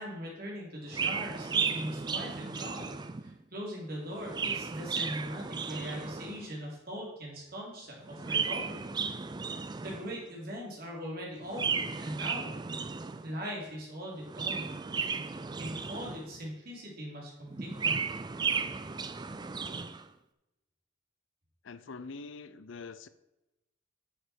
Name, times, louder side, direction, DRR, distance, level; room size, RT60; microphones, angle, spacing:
voice 1, 0.0-2.9 3.2-8.9 9.8-12.5 13.2-14.7 15.6-18.0, equal, 50° right, -3 dB, 3.5 m, -40 dB
Chirp tweet, 0.9-3.4 4.1-6.5 8.0-10.2 11.5-13.4 14.2-16.4 17.5-20.0, right 5 dB, 20° right, 0.4 m, -34 dB
voice 2, 21.6-23.1, left 4 dB, 75° left, 14 dB, 0.6 m, -44 dB
9.7 x 6.9 x 4.5 m, 0.97 s
head